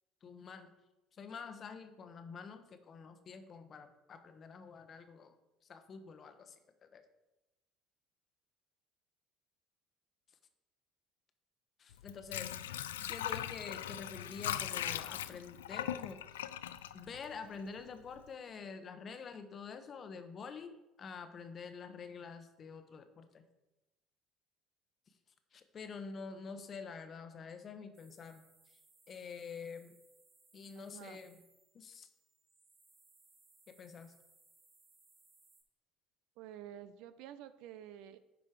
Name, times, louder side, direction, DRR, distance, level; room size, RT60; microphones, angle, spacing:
voice 1, 0.2-0.7 1.1-5.3 5.7-6.5 6.8-7.0 11.8-12.5 13.0-16.2 16.9-23.4 25.5-28.4 29.1-29.9 30.5-31.4 31.7-32.1 33.7-34.1, left 5 dB, 40° left, 9 dB, 1.0 m, -47 dB
Water / Sink (filling or washing), 11.9-17.8 18.2-18.3, left 11 dB, 80° left, 0.3 m, -40 dB
sound 1, 27.9-35.6, right 3 dB, 40° right, 2.8 m, -67 dB
voice 2, 30.7-31.2 36.4-38.2, right 11 dB, 65° right, 13 dB, 0.5 m, -50 dB
10.0 x 5.4 x 4.8 m, 1.0 s
figure-of-eight pair, 60°, 0 cm